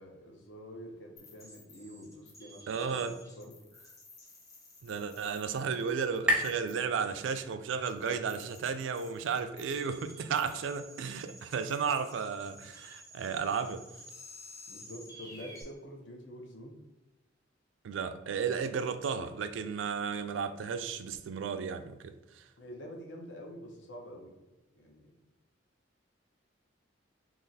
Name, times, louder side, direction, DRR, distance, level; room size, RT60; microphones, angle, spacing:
voice 1, 0.0-3.5 14.7-16.8 22.6-24.3 24.8-25.1, equal, 70° left, 0.8 m, -47 dB
sound 1, 1.2-15.6, left 1 dB, 15° left, 0.9 m, -53 dB
voice 2, 2.7-3.2 4.8-13.9 17.8-22.4, right 6 dB, 75° right, 0.3 m, -34 dB
sound 2, 3.9-7.7, right 1 dB, 5° right, 0.4 m, -36 dB
3.8 x 2.9 x 2.7 m
head